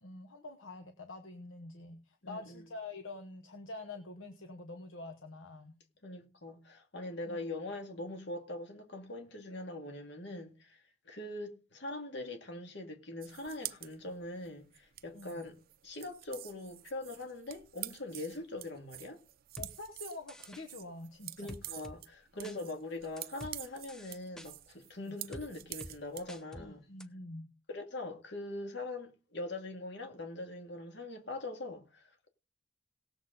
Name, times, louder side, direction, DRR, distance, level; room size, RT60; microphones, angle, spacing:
voice 1, 0.0-5.7 7.2-7.4 15.1-15.4 19.6-21.6 22.3-22.7 25.0-25.2 26.6-27.5, left 2 dB, 75° left, 1.1 m, -46 dB
voice 2, 2.2-2.6 6.0-15.6 15.8-19.2 21.4-26.9 27.7-32.3, left 2 dB, 60° left, 2.2 m, -42 dB
sound 1, 13.2-26.4, right 15 dB, 50° right, 0.5 m, -47 dB
sound 2, 19.6-19.7 20.3-20.6 21.5-22.0 22.4-22.6 23.2-23.6 23.9-24.5 25.3-25.5 25.8-25.9 26.3-26.7 27.0-27.1, equal, 5° left, 0.6 m, -47 dB
18.5 x 7.2 x 3.9 m
head